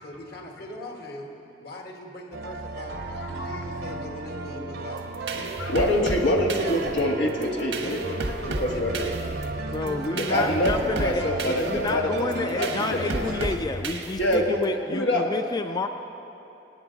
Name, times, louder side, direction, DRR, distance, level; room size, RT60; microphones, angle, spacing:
voice 1, 0.0-1.3 1.6-5.0 5.3-5.8 6.1-6.4 7.7-9.4 9.7-10.5, left 1 dB, 60° left, 1 dB, 1.7 m, -40 dB
sound 1, 2.3-13.6, right 3 dB, 65° right, 0.9 m, -35 dB
voice 2, 3.1-3.7 5.6-8.0 8.6-9.1 10.1-10.7 11.0-13.2 14.2-14.6 14.9-15.2, left 1 dB, 90° left, 0 dB, 1.6 m, -25 dB
sound 2, 5.0-14.6, right 2 dB, 85° right, 1.3 m, -33 dB
voice 3, 9.7-15.9, left 3 dB, 20° left, 7 dB, 0.4 m, -30 dB
24.5 x 9.0 x 3.9 m, 2.9 s
head